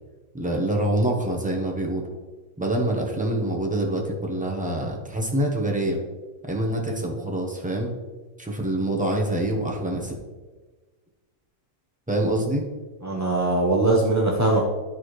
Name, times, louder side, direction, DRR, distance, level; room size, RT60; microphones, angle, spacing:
voice 1, 0.3-2.1 2.6-6.0 6.5-7.9 8.4-10.2 12.1-12.7, right 1 dB, 5° right, -1 dB, 0.8 m, -25 dB
voice 2, 13.0-14.7, right 2 dB, 25° right, -3 dB, 0.3 m, -21 dB
12.0 x 4.2 x 3.2 m, 1.3 s
omnidirectional pair, 1.7 m